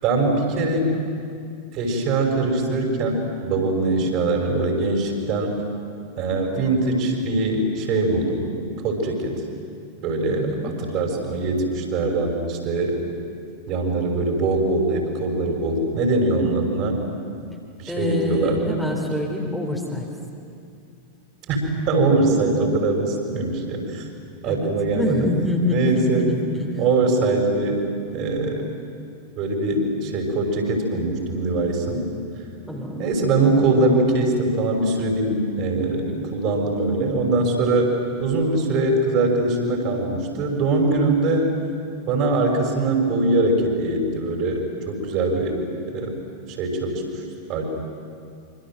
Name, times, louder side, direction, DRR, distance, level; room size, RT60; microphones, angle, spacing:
voice 1, 0.0-1.0 1.7-3.2 3.4-5.6 6.2-8.5 8.8-9.3 10.0-13.0 13.7-17.0 17.8-18.8 21.5-24.0 24.4-25.3 25.7-26.2 26.8-27.8 28.1-28.6 29.4-32.0 33.0-37.9 38.2-41.5 42.0-45.5 45.9-46.1 46.6-47.0 47.5-47.6, right 2 dB, 40° right, 2 dB, 6.2 m, -22 dB
voice 2, 3.9-4.2 10.3-10.8 17.9-20.1 24.4-26.8 32.7-33.1, left 1 dB, ahead, -2 dB, 3.8 m, -26 dB
27.0 x 26.0 x 7.8 m, 2.4 s
figure-of-eight pair, 90°, 0 cm